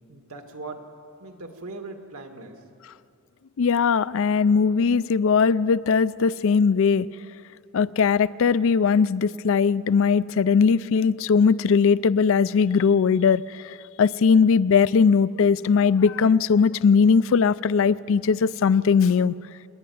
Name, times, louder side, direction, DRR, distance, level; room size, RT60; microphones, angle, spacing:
voice 1, 0.1-0.9 1.2-2.6, right 3 dB, 75° right, 5 dB, 1.9 m, -39 dB
voice 2, 3.6-7.1 7.7-19.3, left 5 dB, 65° left, 17 dB, 0.4 m, -20 dB
26.5 x 10.5 x 9.4 m, 2.5 s
head